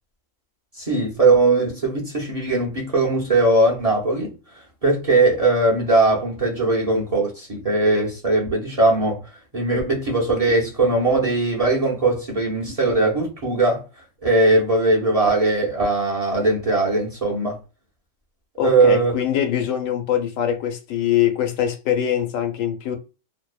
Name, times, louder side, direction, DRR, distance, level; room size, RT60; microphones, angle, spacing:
voice 1, 0.8-4.3 4.8-9.2 9.5-13.8 14.2-17.6 18.6-19.1, right 2 dB, 40° right, 0.6 m, -19 dB
voice 2, 18.6-23.0, left 10 dB, 85° left, 1.0 m, -23 dB
2.6 x 2.0 x 2.3 m
omnidirectional pair, 1.3 m